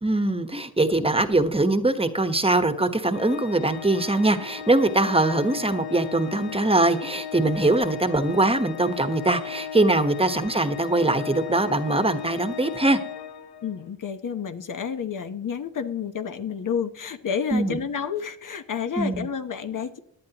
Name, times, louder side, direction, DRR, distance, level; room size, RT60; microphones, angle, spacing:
voice 1, 0.0-13.0 17.5-17.8 19.0-19.2, right 2 dB, 15° right, 9 dB, 1.1 m, -22 dB
Organ, 3.1-13.9, left 8 dB, 85° left, 0.9 m, -36 dB
voice 2, 13.6-20.0, left 7 dB, 55° left, 9 dB, 1.0 m, -30 dB
17.5 x 10.5 x 3.0 m, 0.73 s
cardioid pair, 75°, 37 cm